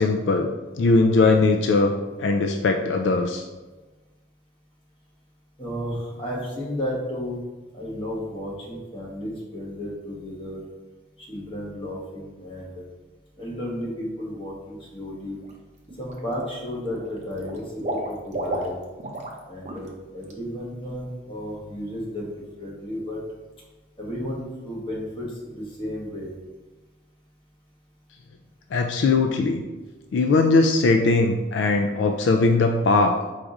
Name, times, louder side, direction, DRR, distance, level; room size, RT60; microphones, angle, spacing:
voice 1, 0.0-1.9 2.2-3.4 28.7-29.6 30.1-33.2, left 3 dB, 70° left, 4 dB, 0.3 m, -20 dB
voice 2, 5.6-7.4 7.7-10.6 11.2-12.8 13.4-15.4 16.0-17.6 17.9-18.8 19.5-22.3 22.6-23.2 24.0-26.3, equal, 25° left, -4 dB, 1.1 m, -33 dB
Water / Liquid, 15.2-15.5 15.9-16.6 16.8-19.4 19.6-19.9 20.2-20.3, right 1 dB, 40° right, 0.5 m, -32 dB
4.7 x 2.5 x 3.9 m, 1.2 s
head